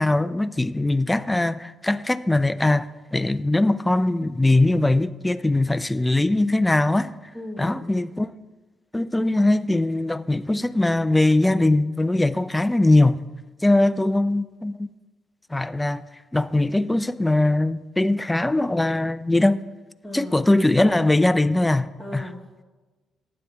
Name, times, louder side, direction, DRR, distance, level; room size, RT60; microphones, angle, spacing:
voice 1, 0.0-7.1 7.6-8.3 8.9-13.2 13.6-14.9 15.5-16.0 16.3-19.6 20.1-22.2, left 2 dB, 10° left, 0.5 m, -21 dB
voice 2, 7.3-7.9 20.0-20.4 22.0-22.6, left 1 dB, 10° right, 1.9 m, -37 dB
15.0 x 9.7 x 3.4 m
cardioid pair, 90°, 0 cm